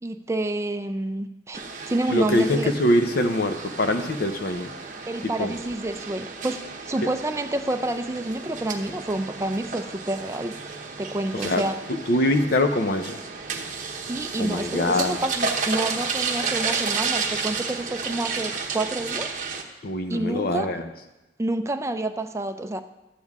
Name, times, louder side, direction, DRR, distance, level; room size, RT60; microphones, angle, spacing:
voice 1, 0.0-2.7 5.1-10.6 11.0-11.7 14.1-19.3 20.1-20.7 21.4-22.8, right 1 dB, 15° right, 7 dB, 0.5 m, -28 dB
sound 1, 1.5-19.6, right 5 dB, 45° right, 1.0 m, -32 dB
voice 2, 2.1-4.7 5.2-5.5 11.3-13.2 14.4-15.2 19.8-20.8, left 1 dB, 55° left, 7 dB, 0.7 m, -23 dB
13.0 x 8.4 x 3.6 m, 1.0 s
head